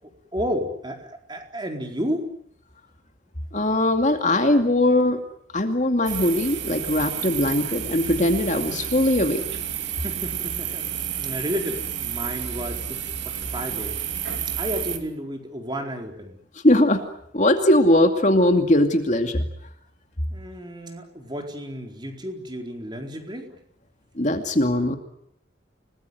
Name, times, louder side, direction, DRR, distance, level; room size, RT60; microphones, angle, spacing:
voice 1, 0.0-2.2 10.0-14.1 14.6-16.4 20.3-23.6, equal, 25° right, 3 dB, 4.4 m, -32 dB
voice 2, 3.5-5.2 5.5-9.4 16.6-17.0 17.3-19.4 24.2-25.0, left 1 dB, 40° left, 5 dB, 2.5 m, -20 dB
sound 1, 6.1-15.0, right 9 dB, 70° right, 2.9 m, -30 dB
29.5 x 20.0 x 9.3 m, 0.70 s
head